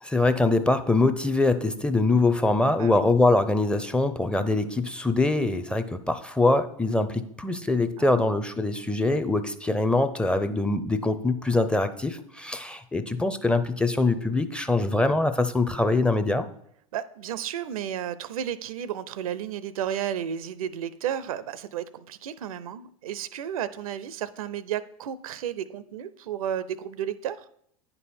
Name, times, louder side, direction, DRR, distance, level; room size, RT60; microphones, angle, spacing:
voice 1, 0.0-16.5, left 2 dB, 5° left, 9 dB, 0.5 m, -23 dB
voice 2, 8.0-8.3 16.9-27.4, right 9 dB, 70° right, 17 dB, 0.5 m, -33 dB
9.3 x 5.5 x 4.3 m, 0.70 s
hypercardioid pair, 90°, 19 cm